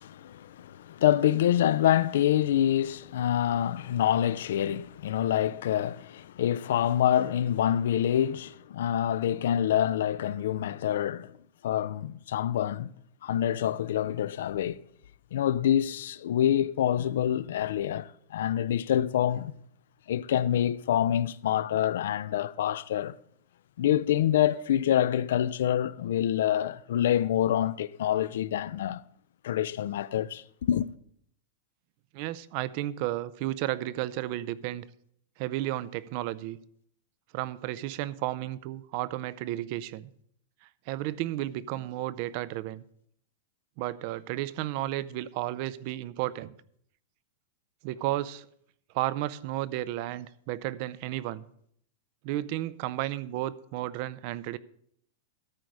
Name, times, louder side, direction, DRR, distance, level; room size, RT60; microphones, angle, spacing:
voice 1, 0.0-11.3 11.6-12.9 13.2-14.8 15.3-19.5 20.1-23.2 23.8-29.0 29.4-30.9, left 11 dB, 70° left, 0.4 m, -26 dB
voice 2, 32.1-34.9 35.4-36.6 37.3-40.1 40.9-42.8 43.8-46.6 47.8-48.5 48.9-51.4 52.2-54.6, right 15 dB, 40° right, 0.4 m, -33 dB
13.0 x 4.7 x 6.3 m
supercardioid pair, 175°, 0 cm